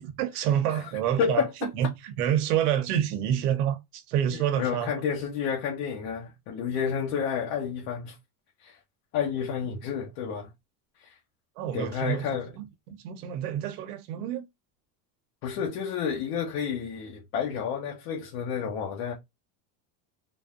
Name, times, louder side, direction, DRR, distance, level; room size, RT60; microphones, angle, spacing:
voice 1, 0.0-1.5 1.7-4.9 11.6-14.4, right 10 dB, 75° right, 1.2 m, -28 dB
voice 2, 1.2-1.7 4.3-8.1 8.6-8.8 9.1-10.5 11.0-11.1 11.7-12.5 15.4-19.1, left 7 dB, 55° left, 1.3 m, -30 dB
4.0 x 2.7 x 2.4 m
supercardioid pair, 160°, 45 cm